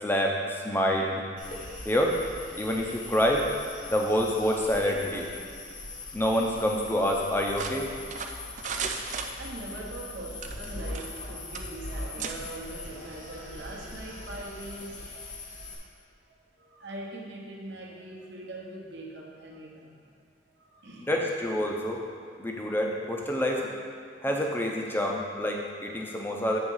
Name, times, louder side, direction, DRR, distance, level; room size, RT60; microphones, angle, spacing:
voice 1, 0.0-1.2 1.8-2.1 2.6-3.5 3.9-5.3 6.1-7.9 21.0-22.0 22.4-23.7 24.2-26.6, equal, 10° left, 0 dB, 0.6 m, -27 dB
sound 1, 1.4-15.8, left 2 dB, 40° left, 1.1 m, -41 dB
sound 2, 7.6-9.8 10.3-11.3 11.5-11.7 12.2-12.4, right 5 dB, 35° right, 0.4 m, -35 dB
voice 2, 9.4-15.7 16.6-20.1 20.6-21.1 22.7-23.0 24.1-24.4, right 2 dB, 60° right, -2 dB, 1.0 m, -42 dB
8.0 x 3.6 x 5.5 m, 2.3 s
head